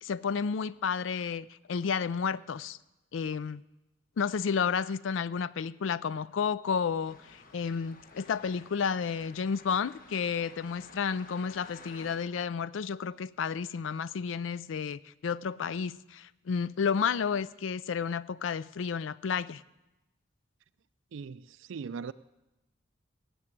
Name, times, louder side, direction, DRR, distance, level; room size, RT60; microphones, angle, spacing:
voice 1, 0.0-2.8 3.1-3.6 4.2-19.6, left 6 dB, 75° left, 19 dB, 0.4 m, -31 dB
sound 1, 7.1-12.2, left 3 dB, 50° left, 1.2 m, -52 dB
voice 2, 21.1-22.1, right 5 dB, 75° right, 13 dB, 0.4 m, -39 dB
17.0 x 7.2 x 8.6 m, 1.0 s
head